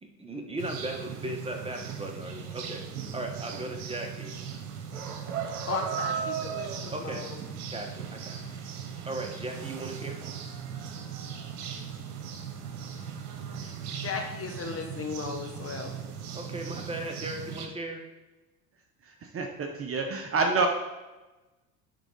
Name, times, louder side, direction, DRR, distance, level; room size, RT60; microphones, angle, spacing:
voice 1, 0.0-2.8 3.1-4.4 6.9-7.2 7.7-8.5 9.0-10.2 16.3-18.0, right 1 dB, 15° right, 3 dB, 1.3 m, -37 dB
sound 1, 0.6-17.7, right 7 dB, 75° right, 1.0 m, -38 dB
voice 2, 5.7-7.4 13.6-15.9, left 5 dB, 30° left, 3 dB, 1.2 m, -36 dB
voice 3, 19.3-20.7, right 4 dB, 30° right, 4 dB, 0.9 m, -27 dB
9.9 x 3.8 x 4.0 m, 1.1 s
hypercardioid pair, 75°, 44 cm